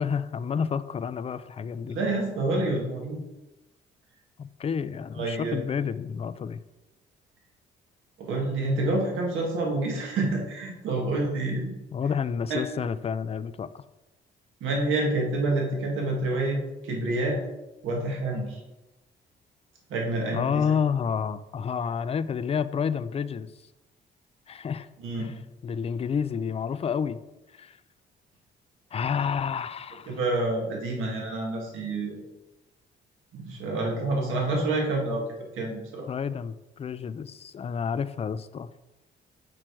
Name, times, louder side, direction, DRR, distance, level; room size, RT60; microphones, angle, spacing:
voice 1, 0.0-2.0 4.4-6.6 11.9-13.8 20.3-23.5 24.5-24.9 25.2-27.2 27.5-27.8 28.9-30.2 36.1-38.7, left 6 dB, 30° left, 14 dB, 0.4 m, -30 dB
voice 2, 1.9-3.2 5.1-5.6 8.2-11.7 12.5-12.6 14.6-17.4 17.8-18.6 19.9-20.6 25.0-25.3 30.1-32.2 33.3-35.2 35.5-36.1, right 2 dB, 80° right, -1 dB, 1.7 m, -28 dB
6.1 x 4.8 x 4.6 m, 0.99 s
cardioid pair, 90°, 20 cm